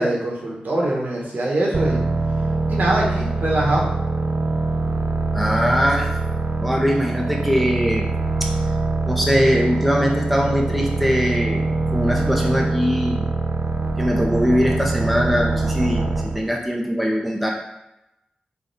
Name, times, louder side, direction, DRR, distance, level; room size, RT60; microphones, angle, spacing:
voice 1, 0.0-2.0 2.7-3.8, right 1 dB, 70° right, -4 dB, 1.1 m, -22 dB
sound 1, 1.7-16.5, right 3 dB, 55° right, 0.3 m, -23 dB
voice 2, 5.3-6.1 6.6-8.1 8.4-8.5 9.1-11.7 11.9-13.3 14.0-17.5, equal, ahead, -1 dB, 0.7 m, -21 dB
3.4 x 2.3 x 4.0 m, 0.88 s
cardioid pair, 50°, 3 cm